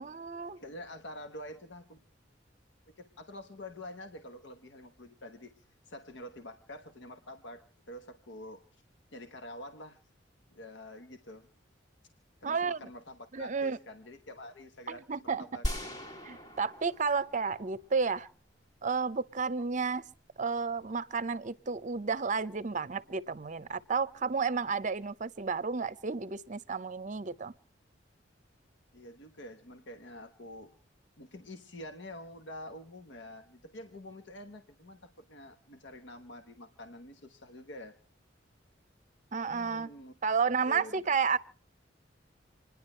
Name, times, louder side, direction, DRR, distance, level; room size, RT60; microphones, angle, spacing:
voice 1, 0.0-0.6 12.4-12.8 13.3-13.8 15.1-15.5 16.2-18.3 18.8-20.0 20.4-27.5 39.3-39.9 40.2-41.4, right 5 dB, 40° right, 0.7 m, -31 dB
voice 2, 0.6-2.0 3.0-8.8 9.1-10.0 10.5-11.5 12.4-15.6 28.9-30.7 31.2-37.9 39.5-40.1 40.6-41.4, left 1 dB, 90° left, 1.2 m, -47 dB
sound 1, 15.6-18.0, equal, 25° left, 1.7 m, -38 dB
27.5 x 10.5 x 4.4 m
head